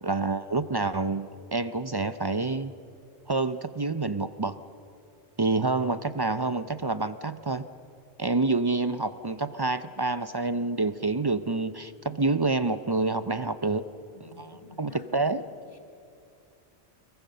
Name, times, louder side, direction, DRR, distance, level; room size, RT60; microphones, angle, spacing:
voice 1, 0.0-2.7 3.3-4.6 5.4-7.7 8.2-13.8 14.4-15.4, right 3 dB, 30° right, 13 dB, 0.4 m, -28 dB
voice 2, 14.1-15.8, left 2 dB, 30° left, 3 dB, 2.3 m, -51 dB
25.0 x 22.5 x 6.6 m, 2.4 s
omnidirectional pair, 1.1 m